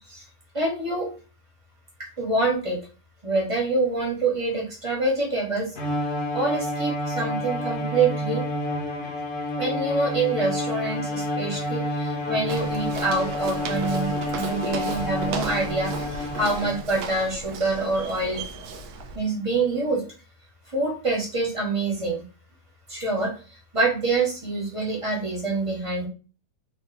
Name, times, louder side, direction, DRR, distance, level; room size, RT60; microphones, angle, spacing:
voice 1, 0.5-1.1 2.2-2.8 3.2-5.7 6.3-8.5 9.6-18.4 19.1-20.0 20.7-22.2 22.9-26.1, right 3 dB, 20° right, -1 dB, 1.2 m, -26 dB
Bowed string instrument, 5.7-17.0, left 1 dB, 55° left, 1.4 m, -29 dB
Walk footsteps, 12.5-19.2, right 4 dB, 75° right, 1.1 m, -35 dB
4.4 x 2.7 x 3.1 m, 0.35 s
omnidirectional pair, 1.7 m